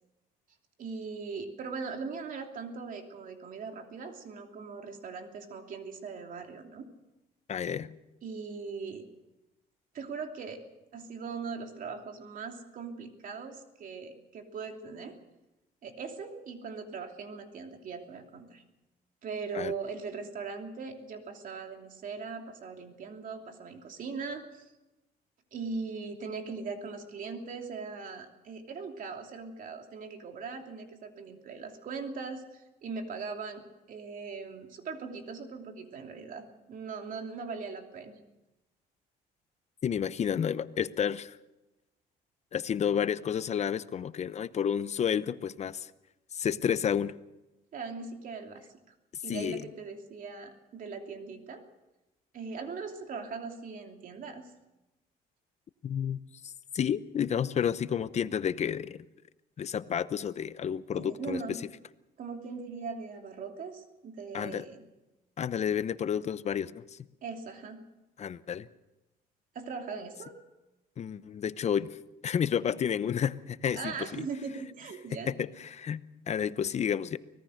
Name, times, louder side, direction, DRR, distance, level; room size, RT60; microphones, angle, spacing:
voice 1, 0.8-6.9 8.2-9.0 9.9-10.6 10.9-15.2 15.8-18.6 19.2-24.7 25.5-38.1 47.7-48.9 49.2-51.6 52.3-54.5 60.9-61.6 62.2-64.8 67.2-67.8 69.5-70.3 73.7-75.3, right 4 dB, 55° right, 4 dB, 2.9 m, -40 dB
voice 2, 7.5-8.0 19.5-19.7 39.8-41.4 42.5-45.9 46.3-47.1 49.3-49.6 55.8-59.0 59.6-61.6 64.3-64.7 65.4-67.0 68.2-68.7 71.0-72.0 72.2-74.3 75.3-77.2, left 8 dB, 40° left, 15 dB, 0.8 m, -31 dB
24.5 x 18.0 x 6.5 m, 1.0 s
cardioid pair, 110°, 17 cm